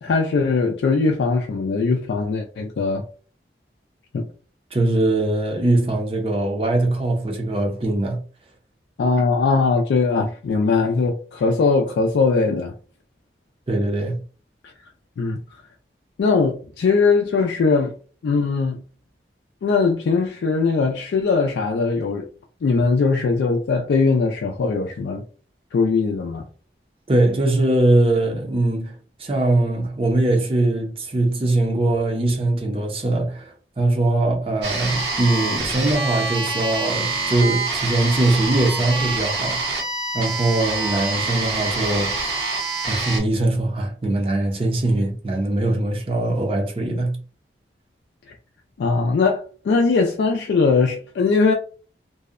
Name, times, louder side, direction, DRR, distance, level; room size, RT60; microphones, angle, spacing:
voice 1, 0.0-3.0 4.1-4.2 9.0-12.7 14.6-14.7 15.2-15.4 16.2-17.9 18.2-18.8 19.6-22.3 22.6-25.2 25.7-26.5 48.3-48.4 48.8-51.5, left 4 dB, 80° left, 0.3 m, -20 dB
voice 2, 4.7-8.2 13.7-14.2 27.1-39.7 40.1-42.4 42.9-47.2, right 2 dB, 30° right, 0.5 m, -21 dB
sound 1, 34.6-43.2, right 3 dB, 75° right, 0.8 m, -26 dB
2.6 x 2.0 x 2.4 m
head